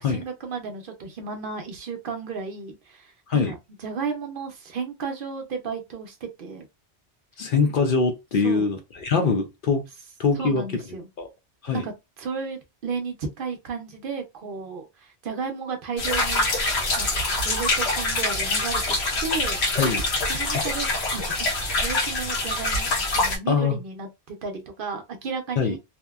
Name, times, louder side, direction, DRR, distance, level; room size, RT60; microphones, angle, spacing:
voice 1, 0.0-6.7 8.4-8.7 10.3-11.1 11.7-11.9 12.2-16.5 17.0-17.1 17.4-19.0 19.2-19.6 20.3-21.5 21.8-25.8, right 5 dB, 60° right, 0.7 m, -33 dB
voice 2, 7.4-9.8 10.2-10.8 11.2-11.3 11.6-11.8 19.8-20.0 23.5-23.8 25.6-25.8, left 4 dB, 60° left, 0.6 m, -23 dB
sound 1, 16.0-23.4, left 2 dB, 80° left, 1.1 m, -25 dB
2.8 x 2.1 x 2.2 m
omnidirectional pair, 1.1 m